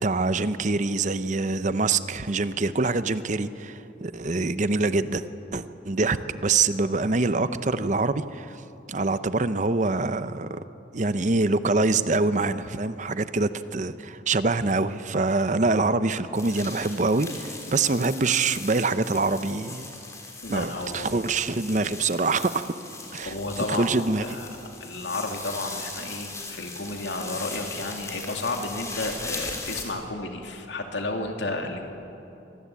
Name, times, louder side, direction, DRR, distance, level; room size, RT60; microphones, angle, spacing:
voice 1, 0.0-5.2 5.5-8.6 8.9-10.6 10.9-19.9 20.5-22.7 23.1-24.2, right 3 dB, 40° right, 12 dB, 0.8 m, -25 dB
sound 1, 16.3-29.8, left 3 dB, 15° left, 3.4 m, -39 dB
voice 2, 20.4-21.2 23.2-23.9 24.2-24.5 24.8-31.9, left 2 dB, 80° left, 3 dB, 2.7 m, -32 dB
25.0 x 19.5 x 8.4 m, 2.8 s
head